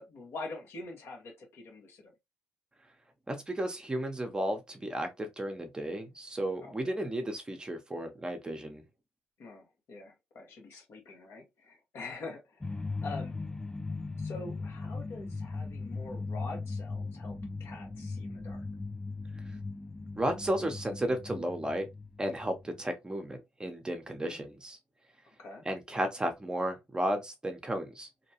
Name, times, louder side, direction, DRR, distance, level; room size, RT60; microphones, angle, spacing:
voice 1, 0.0-2.1 6.6-6.9 9.4-13.4 14.2-18.6 24.2-24.4 25.4-25.6, left 3 dB, 65° left, 1.2 m, -45 dB
voice 2, 3.3-8.8 20.2-21.9 22.2-24.8 25.7-28.1, right 1 dB, 20° right, 0.7 m, -33 dB
sound 1, 12.6-22.8, left 3 dB, 10° left, 0.4 m, -39 dB
2.7 x 2.2 x 2.8 m
supercardioid pair, 75°, 4 cm